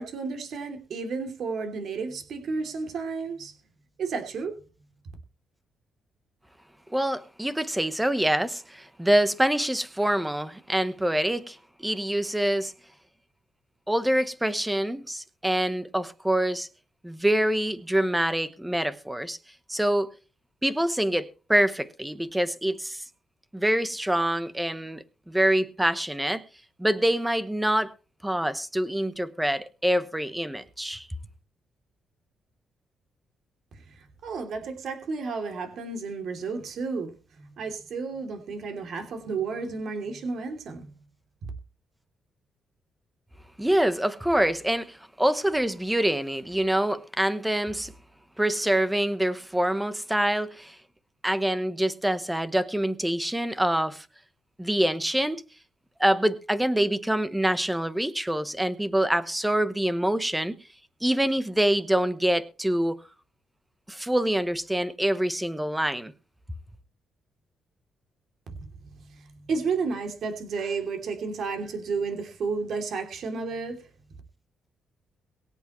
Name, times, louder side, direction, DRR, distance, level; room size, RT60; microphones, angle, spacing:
voice 1, 0.0-3.5 4.0-4.6 34.0-40.9 68.5-73.9, right 4 dB, 50° right, 2.9 m, -32 dB
voice 2, 6.9-12.7 13.9-16.7 17.0-19.4 19.7-20.1 20.6-23.0 23.5-26.4 26.8-27.9 28.2-31.1 43.6-47.9 48.4-50.8 51.2-54.1 54.6-55.4 56.0-60.6 61.0-63.0 63.9-66.1, right 1 dB, 5° right, 0.9 m, -25 dB
23.0 x 8.2 x 3.1 m
cardioid pair, 180°, 0 cm